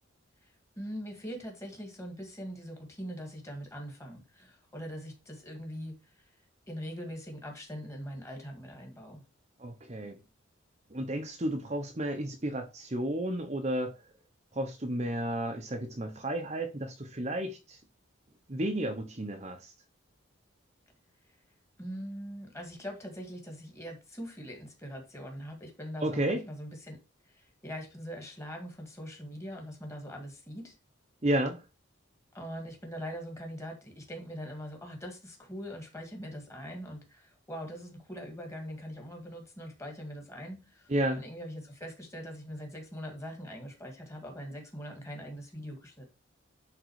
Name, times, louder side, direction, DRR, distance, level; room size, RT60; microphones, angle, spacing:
voice 1, 0.4-6.2 6.7-9.2 21.8-27.0 27.2-30.8 32.3-46.1, equal, 15° left, 2.1 m, -42 dB
voice 2, 9.6-10.2 10.9-13.9 14.5-17.8 18.5-19.7 26.0-26.4 31.2-31.6 40.9-41.2, right 1 dB, 35° right, 0.9 m, -32 dB
10.5 x 3.8 x 4.8 m
head